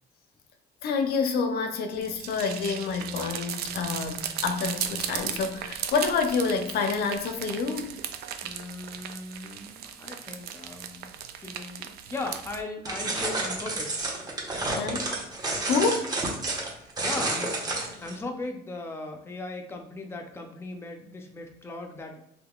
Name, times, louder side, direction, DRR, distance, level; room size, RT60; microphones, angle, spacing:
voice 1, 0.8-7.9 14.8-15.0 15.6-16.1, left 5 dB, 70° left, 5 dB, 0.5 m, -28 dB
sound 1, 1.9-12.6, right 9 dB, 70° right, 0.4 m, -37 dB
voice 2, 8.4-11.1 11.4-14.0 14.6-14.9 17.0-22.2, left 2 dB, 15° left, 3 dB, 0.5 m, -38 dB
sound 2, 12.9-18.2, right 2 dB, 25° right, 0.8 m, -30 dB
3.6 x 2.7 x 2.3 m, 0.80 s
cardioid pair, 110°, 17 cm